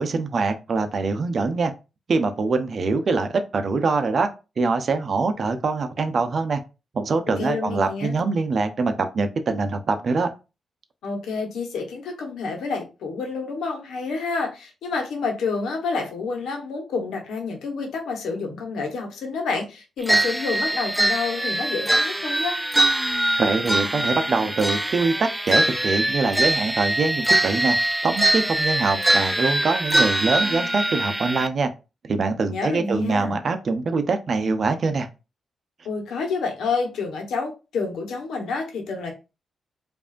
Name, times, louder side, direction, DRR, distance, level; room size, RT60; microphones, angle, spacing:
voice 1, 0.0-1.7 2.1-4.3 4.6-6.6 6.9-10.3 23.4-27.8 28.0-31.7 32.0-35.1, right 4 dB, 55° right, 8 dB, 0.7 m, -24 dB
voice 2, 7.4-8.2 11.0-22.6 32.5-33.4 35.8-39.1, left 4 dB, 90° left, 3 dB, 1.1 m, -28 dB
sound 1, 20.1-31.5, right 1 dB, 10° right, 0.4 m, -23 dB
4.8 x 2.7 x 2.5 m, 0.29 s
cardioid pair, 85°, 0 cm